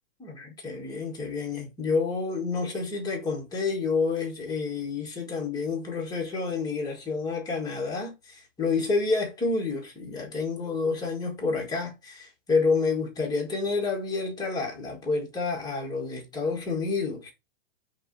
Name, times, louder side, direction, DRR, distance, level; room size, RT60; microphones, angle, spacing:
voice 1, 0.2-17.3, left 4 dB, 15° left, 1.6 m, -29 dB
4.5 x 2.9 x 4.1 m
hypercardioid pair, 135°, 30 cm